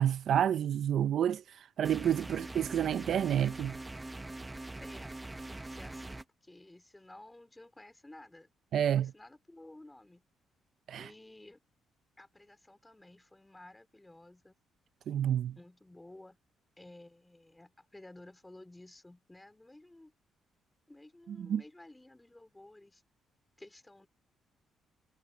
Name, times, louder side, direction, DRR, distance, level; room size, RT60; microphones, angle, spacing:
voice 1, 0.0-3.8 8.7-9.1 10.9-11.1 15.1-15.6 21.4-21.6, right 10 dB, 65° right, 0.5 m, -29 dB
sound 1, 1.8-6.2, right 2 dB, 15° right, 1.0 m, -43 dB
voice 2, 4.8-5.2 5.5-8.5 8.8-10.3 11.0-11.6 12.2-14.5 15.6-16.4 16.8-20.1 20.9-23.0 23.6-24.1, left 1 dB, 10° left, 3.7 m, -54 dB
cardioid pair, 90°, 0 cm